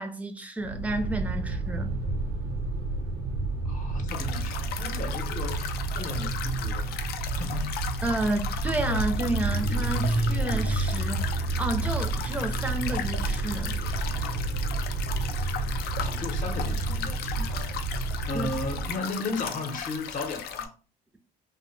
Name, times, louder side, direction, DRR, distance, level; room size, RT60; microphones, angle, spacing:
voice 1, 0.0-2.0 8.0-13.8 18.3-18.5, right 2 dB, 10° right, 0.5 m, -31 dB
sound 1, 0.6-19.0, right 3 dB, 85° right, 0.6 m, -30 dB
voice 2, 3.6-6.9 7.3-7.8 16.0-17.8 18.3-20.7, left 3 dB, 50° left, 0.8 m, -35 dB
sound 2, 4.1-20.7, left 8 dB, 65° left, 0.4 m, -37 dB
2.6 x 2.1 x 3.1 m
cardioid pair, 110°, 17 cm